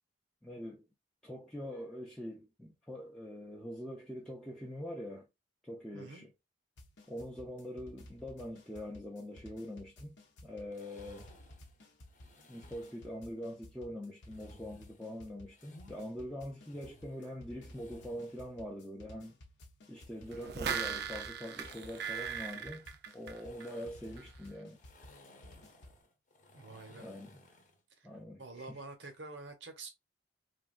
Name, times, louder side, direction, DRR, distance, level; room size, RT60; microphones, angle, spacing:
voice 1, 0.4-0.9 1.2-5.3 5.6-6.3 7.1-10.2 10.4-11.3 12.5-19.4 19.9-22.9 23.1-24.8 26.9-27.4 28.0-28.8, equal, 5° left, 0.5 m, -44 dB
voice 2, 5.9-6.3 26.5-27.1 28.0-28.1 28.4-29.9, right 3 dB, 85° right, 0.8 m, -47 dB
sound 1, 6.8-26.0, left 1 dB, 80° left, 0.7 m, -55 dB
sound 2, 10.7-13.1 14.2-16.0 16.5-18.5 19.9-27.8, left 2 dB, 45° left, 0.8 m, -60 dB
sound 3, 20.3-23.8 24.2-24.3, right 7 dB, 60° right, 0.4 m, -39 dB
3.3 x 2.3 x 2.3 m
head